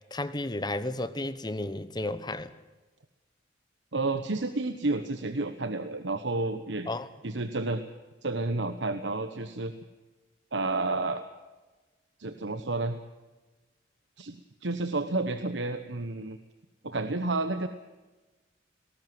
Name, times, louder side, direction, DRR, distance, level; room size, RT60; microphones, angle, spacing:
voice 1, 0.1-2.5 6.9-7.1, left 2 dB, 20° left, 13 dB, 1.0 m, -33 dB
voice 2, 3.9-6.9 7.2-7.8 8.2-9.7 10.5-11.2 12.2-13.0 14.2-16.4 16.8-17.7, right 2 dB, 70° right, 9 dB, 1.1 m, -30 dB
20.0 x 18.0 x 7.7 m, 1.2 s
head